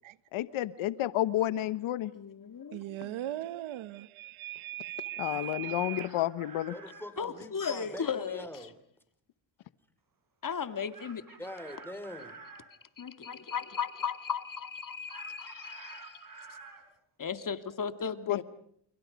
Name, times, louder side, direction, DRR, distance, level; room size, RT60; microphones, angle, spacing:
voice 1, 0.3-2.1 5.2-6.7 18.3-18.4, left 14 dB, 90° left, 1.2 m, -30 dB
voice 2, 2.1-3.3 7.2-8.5 10.4-11.2 13.0-16.3 17.2-18.4, left 6 dB, 45° left, 2.3 m, -36 dB
voice 3, 2.7-6.1, right 14 dB, 80° right, 1.1 m, -39 dB
Chicken rooster, 5.0-7.1 10.9-12.7 15.1-16.8, right 4 dB, 45° right, 7.2 m, -50 dB
voice 4, 6.7-8.7 11.4-12.4, left 1 dB, 5° left, 5.2 m, -43 dB
29.5 x 29.5 x 5.3 m
cardioid pair, 80°, 47 cm